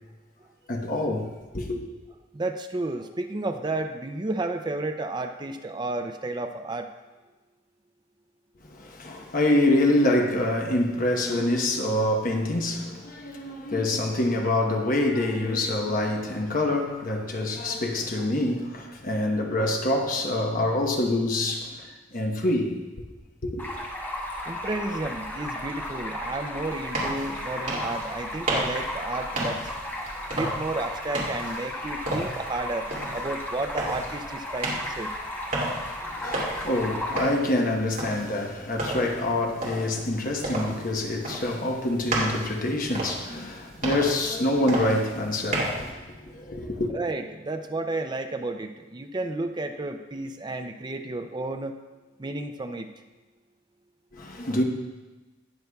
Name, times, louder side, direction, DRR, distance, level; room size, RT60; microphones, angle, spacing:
voice 1, 0.7-1.3 1.5-1.8 8.7-21.9 22.1-22.7 23.4-23.6 36.0-46.9 54.1-54.6, left 1 dB, 45° left, 1.0 m, -26 dB
voice 2, 2.3-6.9 13.5-13.6 24.5-29.7 30.3-35.1 46.9-51.8 52.2-52.9, right 2 dB, 25° right, 0.4 m, -32 dB
Stream, 23.6-37.2, left 1 dB, 10° left, 1.1 m, -35 dB
sound 1, 26.7-45.9, right 1 dB, 45° right, 2.5 m, -33 dB
19.0 x 6.7 x 2.3 m
head